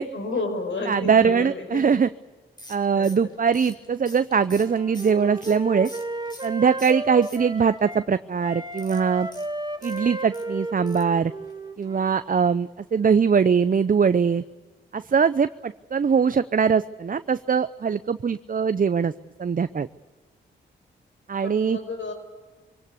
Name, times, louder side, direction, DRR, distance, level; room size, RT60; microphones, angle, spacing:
voice 1, 0.1-1.8 2.9-3.3 21.4-22.1, left 3 dB, 65° left, 7 dB, 5.4 m, -31 dB
voice 2, 0.9-2.1 2.7-5.9 6.4-9.3 9.8-11.3 11.8-14.4 14.9-19.1 19.4-19.9 21.3-21.8, right 6 dB, 40° right, 13 dB, 0.7 m, -22 dB
sound 1, 2.6-6.5 6.8-7.8 8.7-10.5 10.9-11.2 11.4-11.5 11.8-11.9, left 1 dB, 20° left, 4.5 m, -46 dB
Wind instrument woodwind instrument, 4.5-8.1 8.4-12.2, right 1 dB, 20° right, 1.8 m, -34 dB
24.0 x 17.5 x 8.3 m, 1.3 s
supercardioid pair, 40°, 21 cm